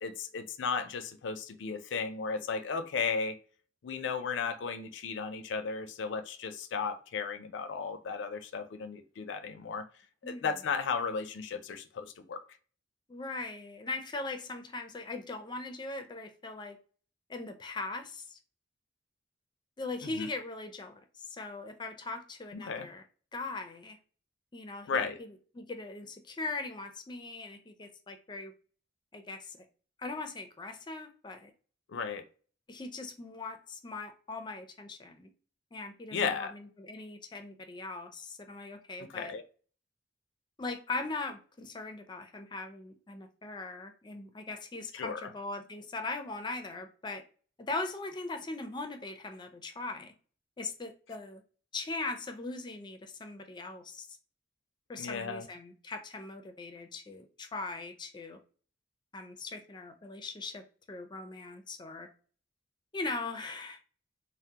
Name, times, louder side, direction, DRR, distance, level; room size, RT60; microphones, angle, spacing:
voice 1, 0.0-3.4 3.8-9.9 10.2-12.4 20.0-20.3 22.5-22.9 24.9-25.2 31.9-32.3 36.1-36.5 39.0-39.4 44.9-45.3 55.0-55.5, left 5 dB, 85° left, 0.4 m, -35 dB
voice 2, 13.1-16.8 17.3-18.4 19.8-23.0 23.3-24.0 24.5-28.5 29.1-29.6 30.0-31.5 32.7-35.3 35.7-39.3 40.6-47.2 47.6-50.1 50.6-51.4 51.7-54.1 54.9-58.4 59.1-62.1 62.9-63.8, left 3 dB, 25° left, 0.4 m, -40 dB
3.5 x 2.0 x 2.8 m
head